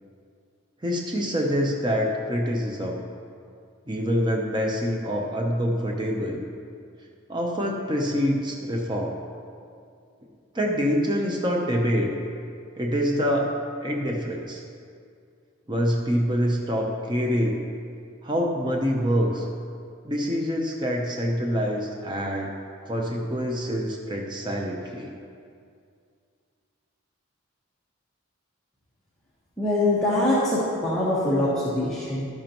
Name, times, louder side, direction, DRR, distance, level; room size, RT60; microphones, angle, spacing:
voice 1, 0.8-3.0 3.9-6.4 7.3-9.2 10.5-12.2 12.7-13.5 13.8-14.6 15.7-17.6 18.2-19.5 20.0-22.5 22.8-25.1, equal, 20° right, 0 dB, 0.7 m, -26 dB
voice 2, 29.6-32.3, left 1 dB, 5° left, -11 dB, 1.3 m, -23 dB
12.0 x 10.5 x 3.0 m, 2.3 s
head